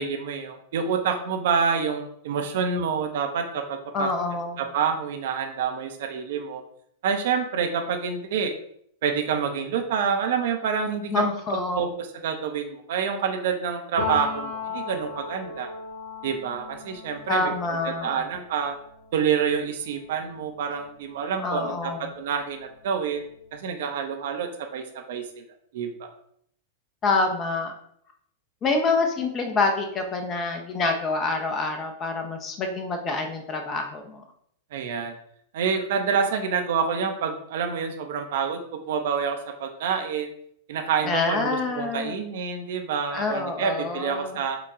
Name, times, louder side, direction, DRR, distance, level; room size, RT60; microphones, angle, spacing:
voice 1, 0.0-4.1 4.6-6.6 7.0-8.5 9.0-15.7 16.2-18.8 19.1-25.4 25.7-26.1 34.7-35.1 35.5-38.6 38.9-40.3 40.7-44.6, right 6 dB, 55° right, 5 dB, 0.5 m, -27 dB
voice 2, 3.9-4.6 11.1-11.9 17.3-18.2 21.4-22.1 27.0-27.7 28.6-34.2 41.0-42.2 43.1-44.4, left 3 dB, 30° left, 5 dB, 0.6 m, -26 dB
Piano, 14.0-21.6 21.9-23.5, left 4 dB, 80° left, 1.1 m, -38 dB
4.8 x 2.2 x 3.6 m, 0.68 s
figure-of-eight pair, 95°, 0 cm